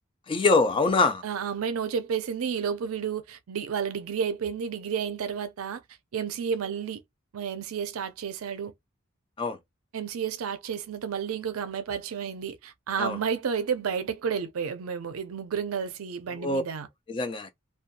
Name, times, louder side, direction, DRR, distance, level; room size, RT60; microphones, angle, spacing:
voice 1, 0.3-1.2 9.4-9.6 13.0-13.2 16.3-16.6 17.1-17.5, left 3 dB, 25° left, 0.3 m, -24 dB
voice 2, 1.2-5.8 6.1-7.0 7.3-8.7 9.9-16.9, right 7 dB, 75° right, 0.4 m, -31 dB
2.5 x 2.2 x 2.6 m
head